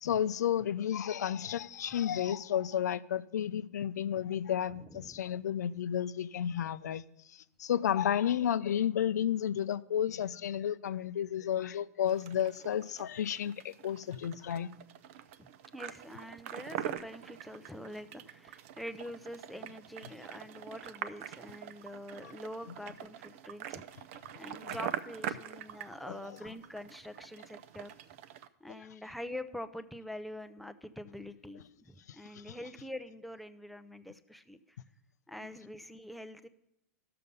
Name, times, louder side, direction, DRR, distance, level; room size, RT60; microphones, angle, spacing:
voice 1, 0.0-7.0 7.3-14.7 24.7-24.8 26.1-26.2 32.1-32.2, left 9 dB, 90° left, 0.5 m, -32 dB
voice 2, 4.7-5.2 15.4-23.8 24.4-27.9 28.6-34.8 35.3-36.5, left 1 dB, ahead, 0.5 m, -45 dB
sound 1, 12.1-28.5, right 11 dB, 50° right, 0.5 m, -44 dB
12.5 x 6.7 x 5.3 m
hypercardioid pair, 140°, 9 cm